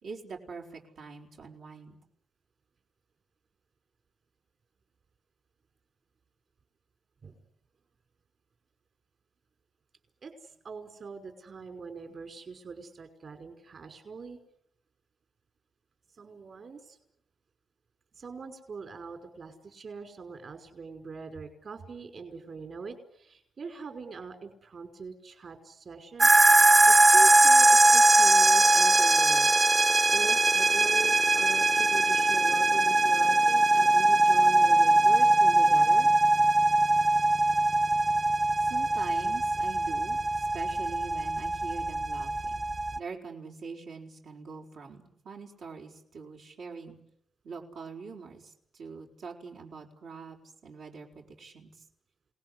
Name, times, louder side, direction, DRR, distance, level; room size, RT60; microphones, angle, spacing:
voice 1, 0.0-2.0 38.6-42.6 42.9-47.0 47.4-50.4 50.6-51.8, right 4 dB, 80° right, -1 dB, 5.0 m, -43 dB
voice 2, 10.6-14.4 16.2-17.0 18.2-36.1, right 5 dB, 55° right, 7 dB, 5.3 m, -42 dB
sound 1, 26.2-43.0, right 2 dB, 30° right, 1.0 m, -21 dB
28.5 x 19.5 x 9.9 m, 0.75 s
cardioid pair, 95°, 0 cm